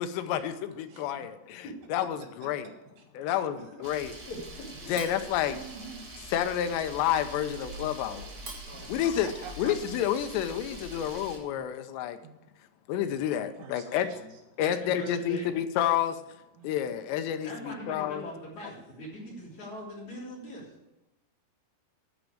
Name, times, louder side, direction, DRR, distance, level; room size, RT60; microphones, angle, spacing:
voice 1, 0.0-1.6 1.9-2.7 3.2-4.1 4.9-5.6 6.3-8.3 8.9-9.3 9.6-12.2 12.9-14.1 14.6-16.2 16.6-18.2, left 10 dB, 80° left, 9 dB, 2.9 m, -29 dB
voice 2, 3.0-3.4 5.5-6.1 8.7-9.7 11.5-11.6 12.2-12.3 13.4-14.3 14.9-15.1 16.6-16.7, right 6 dB, 85° right, 2 dB, 4.0 m, -47 dB
Camera, 3.8-11.4, right 1 dB, 55° right, 1.2 m, -43 dB
voice 3, 8.7-9.0 14.6-15.6 17.4-20.7, equal, 45° left, -5 dB, 4.4 m, -41 dB
11.0 x 5.2 x 8.5 m, 0.98 s
omnidirectional pair, 5.2 m